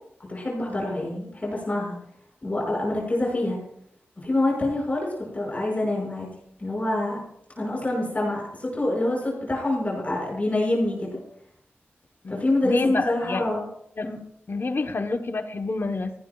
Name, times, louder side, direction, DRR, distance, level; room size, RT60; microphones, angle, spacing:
voice 1, 0.3-1.9 2.4-3.6 4.2-6.3 6.6-7.2 7.5-11.2 12.3-13.7 14.0-14.2, left 1 dB, 35° left, -3 dB, 5.9 m, -26 dB
voice 2, 12.2-13.5 14.0-14.1 14.5-16.1, left 3 dB, 60° left, 7 dB, 1.0 m, -28 dB
19.0 x 16.0 x 2.4 m, 0.71 s
wide cardioid pair, 75°, 4 cm